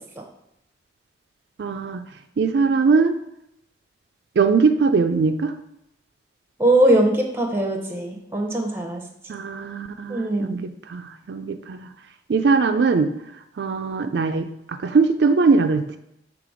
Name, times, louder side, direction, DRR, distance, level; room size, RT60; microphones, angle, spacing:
voice 1, 1.6-2.0 2.4-3.1 4.4-5.5 9.3-11.0 11.3-11.9 12.3-13.1 13.6-14.5 14.8-16.0, right 4 dB, 70° right, 7 dB, 0.4 m, -20 dB
voice 2, 6.6-9.0 10.1-10.6, right 1 dB, 15° right, 3 dB, 0.8 m, -21 dB
6.8 x 3.4 x 5.0 m, 0.80 s
head